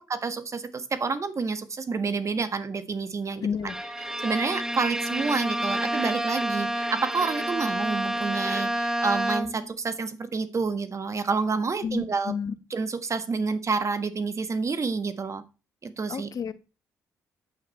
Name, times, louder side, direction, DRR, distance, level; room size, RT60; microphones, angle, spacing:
voice 1, 0.0-3.5 4.2-12.3 12.7-15.4 15.8-16.3, right 4 dB, 40° right, 1.5 m, -29 dB
voice 2, 3.4-3.8 11.8-12.5 16.1-16.5, left 6 dB, 50° left, 1.1 m, -30 dB
Bowed string instrument, 3.7-9.8, right 1 dB, 5° right, 1.1 m, -29 dB
9.5 x 8.4 x 4.4 m
hypercardioid pair, 45°, 8 cm